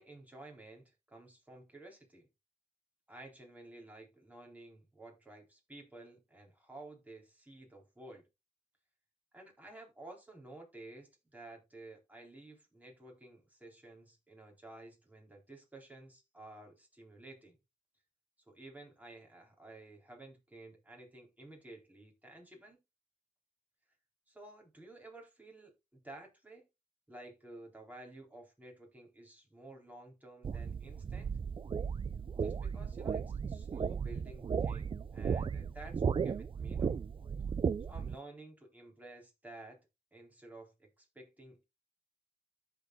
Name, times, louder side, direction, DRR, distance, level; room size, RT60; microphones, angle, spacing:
voice 1, 0.0-2.3 3.1-8.3 9.3-17.6 18.5-22.8 24.3-26.7 27.1-31.3 32.4-37.0 37.9-39.8 40.1-41.6, right 2 dB, 10° right, 3.6 m, -53 dB
sound 1, 30.4-38.1, right 6 dB, 40° right, 0.4 m, -35 dB
13.5 x 4.8 x 2.3 m
supercardioid pair, 50°, 14 cm